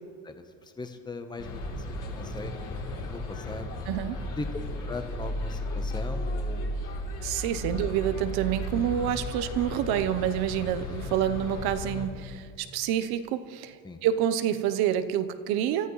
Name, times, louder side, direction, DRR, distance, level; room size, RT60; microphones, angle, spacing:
voice 1, 0.2-1.6 1.9-3.7 4.4-4.5 4.9-6.9 7.7-7.9 11.1-11.2 13.8-14.0, left 3 dB, 10° left, 7 dB, 1.0 m, -40 dB
sound 1, 1.4-12.1, left 1 dB, 55° left, 3.3 m, -34 dB
voice 2, 3.9-4.2 7.2-15.9, right 10 dB, 75° right, 11 dB, 1.0 m, -28 dB
27.0 x 14.0 x 3.2 m, 2.2 s
cardioid pair, 115°, 38 cm